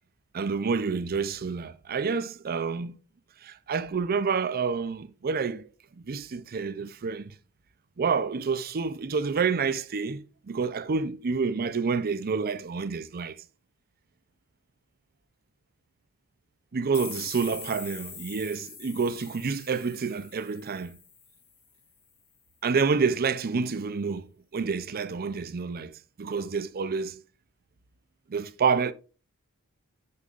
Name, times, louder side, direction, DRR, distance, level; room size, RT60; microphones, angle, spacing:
voice 1, 0.3-3.0 3.4-5.7 6.0-7.3 8.0-13.4 16.7-21.0 22.6-24.3 24.5-27.2 28.3-28.9, right 5 dB, 45° right, 0.5 m, -28 dB
sound 1, 16.9-21.6, left 6 dB, 25° left, 1.0 m, -43 dB
6.7 x 6.7 x 2.4 m
head